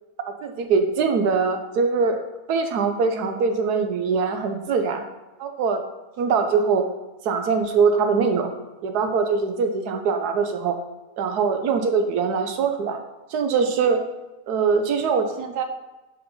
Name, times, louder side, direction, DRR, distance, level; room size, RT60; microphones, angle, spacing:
voice 1, 0.4-2.2 2.5-5.0 5.4-5.8 6.2-6.9 7.2-8.5 8.8-10.8 11.2-13.0 13.3-14.0 14.5-15.6, right 5 dB, 80° right, 6 dB, 1.3 m, -22 dB
5.6 x 4.4 x 5.4 m, 1.1 s
omnidirectional pair, 1.7 m